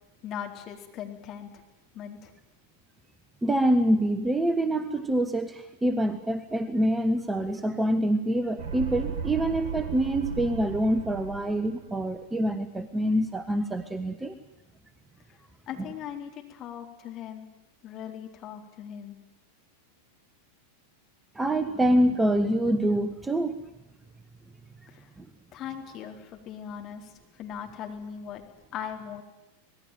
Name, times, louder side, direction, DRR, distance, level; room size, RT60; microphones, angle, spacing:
voice 1, 0.2-1.6 1.9-2.3 15.3-15.4 15.7-17.5 17.8-19.2 24.9-25.1 25.5-27.1 27.4-28.4 28.7-29.2, left 8 dB, 35° left, 3 dB, 4.1 m, -39 dB
voice 2, 3.4-14.4 21.3-23.6 25.2-25.3, right 1 dB, 10° right, 11 dB, 1.3 m, -26 dB
sound 1, 8.6-12.1, right 6 dB, 50° right, 3.3 m, -36 dB
26.0 x 19.0 x 9.3 m, 0.99 s
figure-of-eight pair, 90°, 0 cm